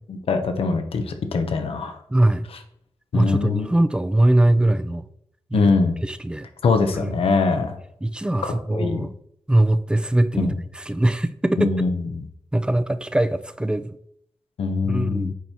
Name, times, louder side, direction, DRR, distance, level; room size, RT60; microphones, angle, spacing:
voice 1, 0.1-2.0 3.1-3.7 5.5-5.9 6.6-7.8 8.4-9.1 10.3-10.5 11.6-12.2 14.6-15.3, left 4 dB, 90° left, 6 dB, 1.0 m, -22 dB
voice 2, 2.1-2.4 3.1-5.0 5.5-5.7 6.0-6.5 6.9-7.1 8.0-9.1 9.5-10.5 10.7-11.7 12.5-14.0 14.8-15.3, right 1 dB, 10° right, 11 dB, 0.5 m, -21 dB
8.4 x 4.6 x 4.4 m, 0.69 s
wide cardioid pair, 90°, 10 cm